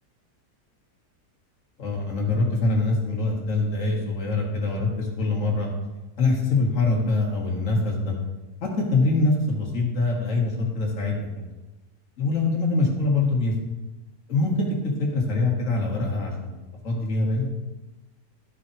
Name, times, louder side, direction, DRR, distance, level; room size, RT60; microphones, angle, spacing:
voice 1, 1.8-5.7 6.2-8.2 8.6-11.5 12.2-13.6 14.3-17.5, left 3 dB, 50° left, -2 dB, 1.9 m, -24 dB
12.5 x 5.0 x 4.1 m, 1.1 s
omnidirectional pair, 1.8 m